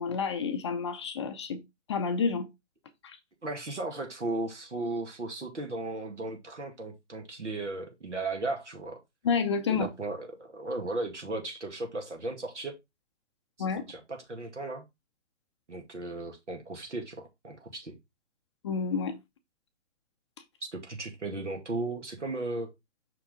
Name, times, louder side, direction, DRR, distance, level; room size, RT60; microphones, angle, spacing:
voice 1, 0.0-1.6 1.9-2.5 3.0-3.2 9.2-9.9 13.6-13.8 18.6-19.2, left 5 dB, 25° left, 0.6 m, -29 dB
voice 2, 3.4-9.0 9.7-12.8 13.6-14.9 15.7-18.0 20.6-22.7, right 2 dB, 75° right, 2.2 m, -36 dB
6.0 x 4.8 x 3.6 m
figure-of-eight pair, 125°, 36 cm